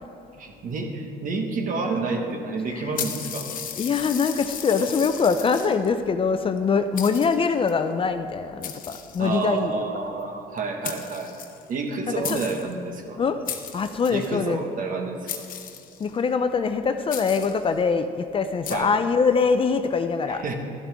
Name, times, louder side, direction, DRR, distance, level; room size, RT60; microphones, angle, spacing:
voice 1, 0.4-3.5 9.2-13.2 14.1-15.4 18.7-18.9 20.3-20.5, right 4 dB, 55° right, 3 dB, 1.5 m, -29 dB
sound 1, 3.0-5.9 6.6-6.7 7.0-7.7 8.6-9.6 10.6-10.7 10.8-11.9 12.2-12.7 13.5-14.3 15.3-16.2 17.1-17.7 18.6-18.8, left 8 dB, 55° left, 1.0 m, -35 dB
voice 2, 3.8-9.7 12.1-12.4 13.2-13.4 13.7-14.6 16.0-20.5, left 5 dB, 30° left, 9 dB, 0.5 m, -23 dB
12.0 x 11.5 x 3.6 m, 2.7 s
cardioid pair, 110°, 17 cm